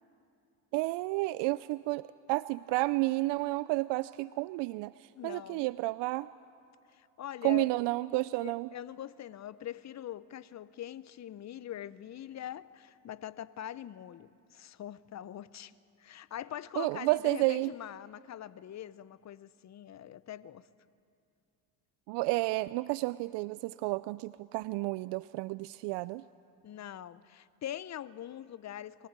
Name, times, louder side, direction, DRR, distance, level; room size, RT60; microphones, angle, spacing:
voice 1, 0.7-6.3 7.4-8.7 16.8-17.7 22.1-26.2, right 21 dB, 65° right, 0.5 m, -31 dB
voice 2, 5.1-5.7 6.9-7.7 8.4-15.7 16.0-20.7 26.6-29.1, left 11 dB, 35° left, 0.7 m, -43 dB
23.0 x 15.5 x 8.2 m
hypercardioid pair, 65°, 46 cm